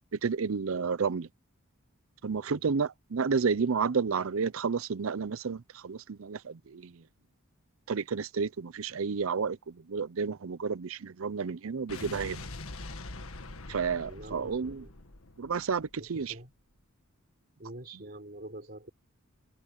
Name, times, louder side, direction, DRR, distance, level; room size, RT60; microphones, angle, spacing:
voice 1, 0.1-1.3 2.2-7.0 7.9-12.4 13.7-14.8 15.4-16.3, right 5 dB, 70° right, 0.6 m, -31 dB
Explosion, 11.9-16.2, left 2 dB, 75° left, 1.7 m, -43 dB
voice 2, 14.0-14.9 16.0-16.5 17.6-18.9, right 1 dB, 45° right, 4.3 m, -46 dB
head